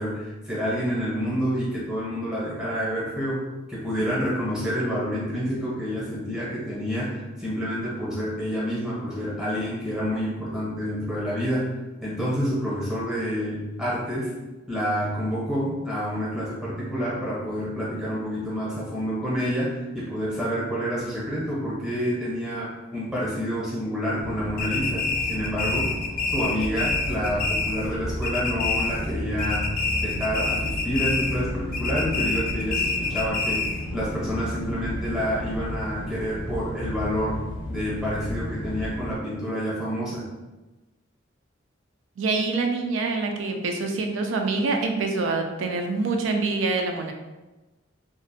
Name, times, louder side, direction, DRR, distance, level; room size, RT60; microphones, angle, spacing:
voice 1, 0.0-14.4 14.7-26.0 26.3-29.7 30.0-37.4 37.7-40.3, equal, 5° right, -8 dB, 0.7 m, -28 dB
sound 1, 24.2-39.1, equal, 90° left, 0.6 m, -33 dB
sound 2, 24.6-28.0 28.2-29.1 29.4-31.4 31.7-33.9, left 4 dB, 50° left, 0.3 m, -27 dB
voice 2, 42.2-47.1, right 3 dB, 80° right, 4 dB, 0.4 m, -25 dB
2.4 x 2.0 x 2.6 m, 1.1 s
head